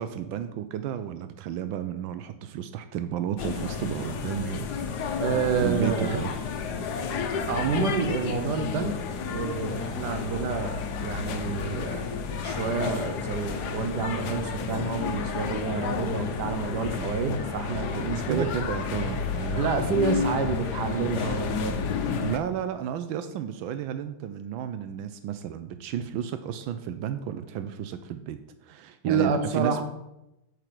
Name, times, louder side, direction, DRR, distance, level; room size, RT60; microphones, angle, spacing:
voice 1, 0.0-4.7 5.0-5.3 5.6-6.3 17.0-17.1 18.3-19.6 22.2-29.8, right 9 dB, 85° right, 10 dB, 1.4 m, -33 dB
sound 1, 3.4-22.4, left 6 dB, 60° left, 1.4 m, -31 dB
voice 2, 5.2-6.2 7.5-9.0 9.3-18.4 19.5-21.8 29.0-29.8, right 5 dB, 60° right, 7 dB, 1.6 m, -28 dB
8.6 x 6.8 x 6.0 m, 0.90 s
omnidirectional pair, 2.2 m